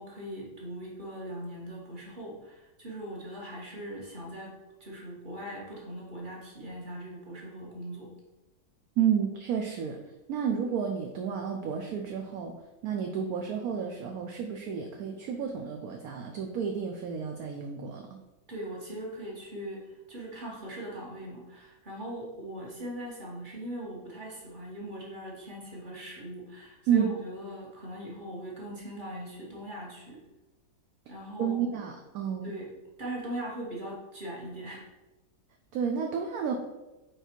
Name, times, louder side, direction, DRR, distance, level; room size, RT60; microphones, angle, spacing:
voice 1, 0.0-4.5 4.8-8.1 18.5-30.2 31.1-31.6 32.4-32.7 33.0-34.8, right 1 dB, 30° right, -3 dB, 1.6 m, -40 dB
voice 2, 9.0-10.0 10.3-12.5 12.8-18.2 26.9-27.1 31.4-32.5 35.7-36.5, right 7 dB, 70° right, 3 dB, 1.0 m, -31 dB
4.9 x 4.6 x 4.5 m, 1.1 s
omnidirectional pair, 1.8 m